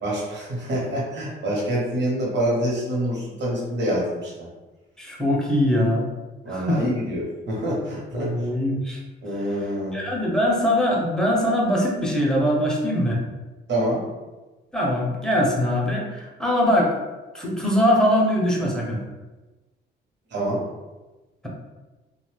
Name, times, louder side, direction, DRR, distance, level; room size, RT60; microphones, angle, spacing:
voice 1, 0.0-4.5 6.4-8.3 9.2-10.0 13.7-14.0 20.3-20.6, right 1 dB, 60° right, -4 dB, 1.0 m, -26 dB
voice 2, 5.0-6.1 6.5-7.0 8.1-9.0 9.9-13.2 14.7-16.9 17.3-19.0, equal, 5° left, -3 dB, 0.7 m, -22 dB
2.7 x 2.2 x 3.2 m, 1.2 s
cardioid pair, 90°, 20 cm